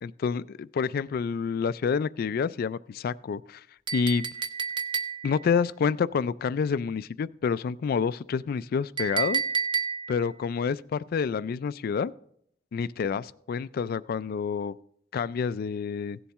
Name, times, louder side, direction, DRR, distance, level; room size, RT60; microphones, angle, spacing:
voice 1, 0.0-3.6 3.9-4.3 5.2-9.4 10.1-12.1 12.7-14.7 15.1-16.2, left 6 dB, 50° left, 18 dB, 0.3 m, -28 dB
Chink clink, 3.9-5.5 9.0-10.3, right 6 dB, 25° right, 0.6 m, -30 dB
16.5 x 7.1 x 3.5 m, 0.69 s
head